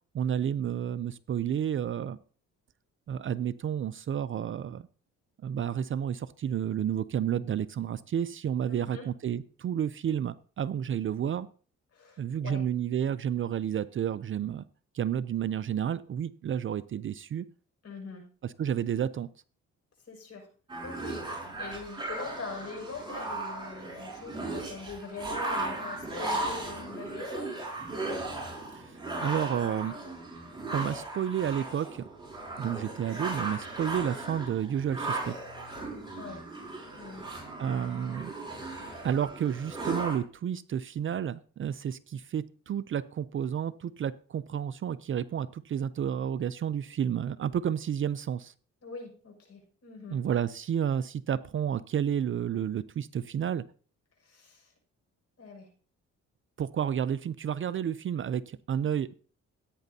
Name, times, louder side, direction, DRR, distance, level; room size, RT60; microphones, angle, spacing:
voice 1, 0.1-2.2 3.1-4.8 5.4-11.5 12.2-14.6 14.9-17.4 18.4-19.3 28.7-29.9 30.7-32.1 32.6-35.3 37.6-38.3 39.0-48.5 50.1-53.6 56.6-59.1, right 9 dB, 45° right, 16 dB, 0.5 m, -31 dB
voice 2, 8.7-9.1 11.9-12.6 17.8-18.3 20.1-20.5 20.8-21.2 21.5-27.5 36.1-36.5 36.9-37.3 48.8-50.2 54.2-54.7 55.4-55.7, left 4 dB, 55° left, 1 dB, 6.3 m, -43 dB
sound 1, 20.7-40.2, right 2 dB, 15° right, 5.8 m, -37 dB
16.0 x 9.1 x 2.8 m, 0.41 s
cardioid pair, 90°, 30 cm